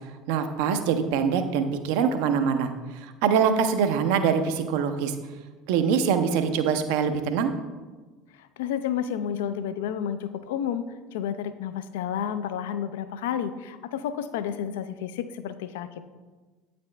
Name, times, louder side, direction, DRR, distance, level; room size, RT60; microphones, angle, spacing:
voice 1, 0.3-2.7 3.2-5.1 5.7-7.5, right 6 dB, 60° right, 9 dB, 0.5 m, -23 dB
voice 2, 8.4-10.8 11.1-16.0, left 9 dB, 70° left, 12 dB, 0.3 m, -31 dB
8.7 x 4.1 x 3.2 m, 1.3 s
figure-of-eight pair, 70°, 0 cm